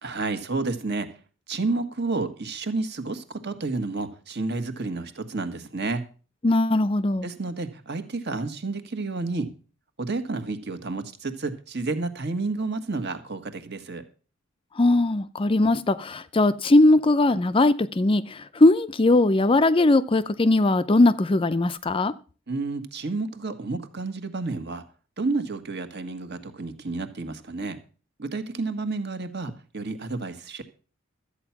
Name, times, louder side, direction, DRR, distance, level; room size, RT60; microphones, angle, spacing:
voice 1, 0.0-1.1 1.5-6.0 7.2-9.5 10.0-14.0 22.5-24.8 25.2-27.8 28.2-30.6, right 3 dB, 55° right, 1.6 m, -30 dB
voice 2, 6.4-7.3 14.8-22.1, left 2 dB, 25° left, 0.5 m, -20 dB
13.0 x 8.6 x 5.9 m
head